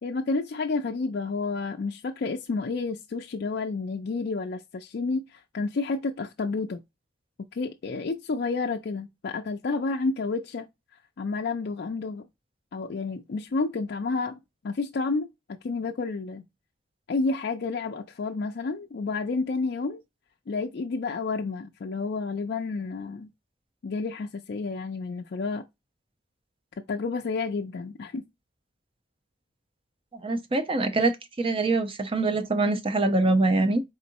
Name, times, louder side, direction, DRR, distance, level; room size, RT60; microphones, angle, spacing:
voice 1, 0.0-6.8 7.5-10.7 11.2-12.3 12.7-14.4 14.6-15.3 15.6-16.4 17.1-20.0 20.5-23.3 23.8-25.6 26.9-28.2, left 3 dB, 55° left, 0.4 m, -30 dB
voice 2, 30.2-33.8, right 2 dB, 30° right, 0.6 m, -24 dB
4.1 x 3.7 x 2.6 m
head